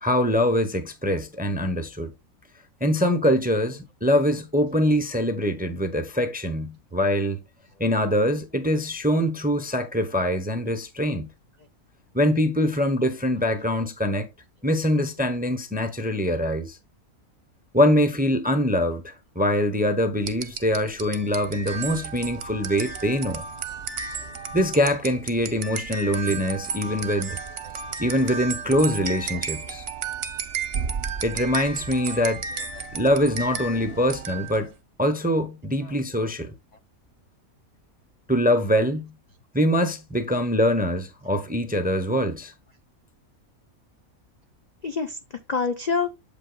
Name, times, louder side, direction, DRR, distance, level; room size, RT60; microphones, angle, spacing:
voice 1, 0.0-2.1 2.8-7.4 7.8-11.3 12.1-14.3 14.6-16.8 17.7-23.4 24.5-27.4 28.0-29.9 31.2-32.4 32.9-34.7 35.0-36.5 38.3-39.1 39.5-42.5, equal, 10° right, 0.5 m, -23 dB
sound 1, 20.2-34.7, right 5 dB, 50° right, 0.9 m, -33 dB
voice 2, 29.3-29.7 31.9-32.2 32.5-32.9 34.0-34.1 35.8-35.9 44.8-46.1, left 5 dB, 50° left, 0.5 m, -30 dB
8.0 x 7.5 x 2.2 m
omnidirectional pair, 1.5 m